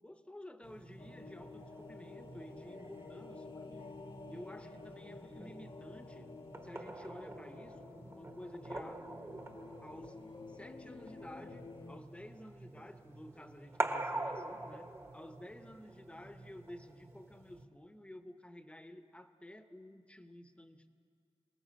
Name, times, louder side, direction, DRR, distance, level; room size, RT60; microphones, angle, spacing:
voice 1, 0.0-3.9 4.3-6.3 6.6-9.3 9.8-10.2 10.5-20.9, left 1 dB, 10° left, 8 dB, 1.1 m, -52 dB
sound 1, 0.6-17.7, right 2 dB, 25° right, 1.4 m, -46 dB
sound 2, 1.0-12.0, left 3 dB, 50° left, 1.0 m, -51 dB
26.0 x 18.5 x 7.7 m, 2.3 s
wide cardioid pair, 135°, 10 cm